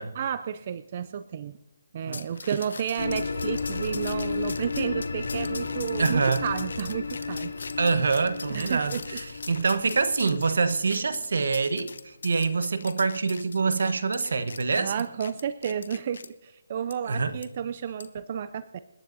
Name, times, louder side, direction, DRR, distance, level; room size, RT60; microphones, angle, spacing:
voice 1, 0.1-1.6 1.9-7.6 8.5-9.2 14.7-18.8, right 8 dB, 30° right, 0.4 m, -32 dB
sound 1, 2.1-16.3 16.9-17.0 17.4-17.5 18.0-18.2, left 4 dB, 65° left, 0.9 m, -42 dB
sound 2, 3.0-11.8, left 4 dB, 80° left, 2.7 m, -33 dB
voice 2, 6.0-6.5 7.8-14.9 17.1-17.4, right 4 dB, 65° right, 1.1 m, -25 dB
28.0 x 10.0 x 2.7 m
hypercardioid pair, 165°, 0 cm